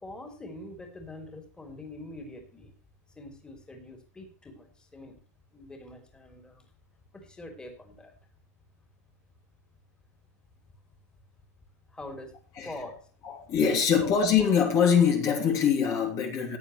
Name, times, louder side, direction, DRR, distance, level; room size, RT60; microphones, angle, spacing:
voice 1, 0.0-2.7 3.1-5.2 5.5-6.6 7.1-8.1 11.9-12.3 12.6-13.0 14.0-14.1, left 1 dB, 10° left, 3.3 m, -44 dB
voice 2, 13.2-16.6, left 7 dB, 35° left, 3.0 m, -23 dB
15.5 x 9.9 x 3.2 m
supercardioid pair, 140°, 9 cm